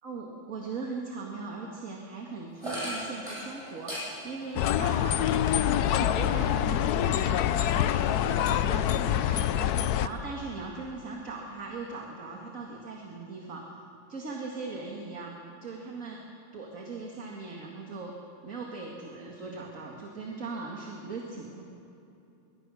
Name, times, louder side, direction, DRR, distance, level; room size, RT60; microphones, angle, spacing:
voice 1, 0.0-5.7 6.0-13.6 14.1-15.3 15.6-16.2 16.5-18.1 18.4-21.6, right 3 dB, 40° right, -1 dB, 2.2 m, -39 dB
sound 1, 2.6-6.6 7.0-8.1, equal, 15° right, 7.2 m, -40 dB
sound 2, 4.6-10.1, left 10 dB, 70° left, 0.9 m, -25 dB
24.0 x 21.5 x 6.3 m, 2.8 s
omnidirectional pair, 2.3 m